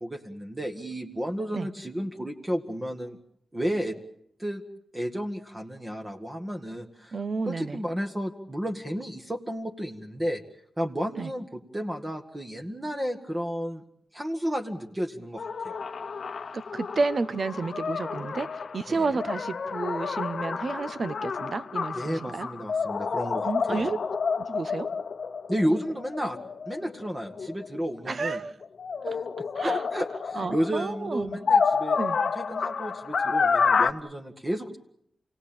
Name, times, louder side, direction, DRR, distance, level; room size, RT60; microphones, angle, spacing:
voice 1, 0.0-3.2 3.5-4.0 4.4-4.6 4.9-7.1 7.5-10.4 10.8-13.8 14.1-15.8 18.9-19.2 21.9-23.9 25.5-26.4 26.7-28.4 29.6-32.0 32.4-34.8, equal, 15° right, 2 dB, 1.8 m, -32 dB
voice 2, 7.1-7.8 11.2-11.3 16.5-22.5 23.4-24.0 24.4-24.9 28.1-28.5 29.0-29.2 29.5-29.8 30.3-31.4 32.0-32.2, right 4 dB, 50° right, 13 dB, 1.0 m, -31 dB
sound 1, 15.4-28.1 28.6-33.9, left 5 dB, 60° left, 0.9 m, -29 dB
28.5 x 18.0 x 8.8 m, 0.73 s
wide cardioid pair, 110°, 0 cm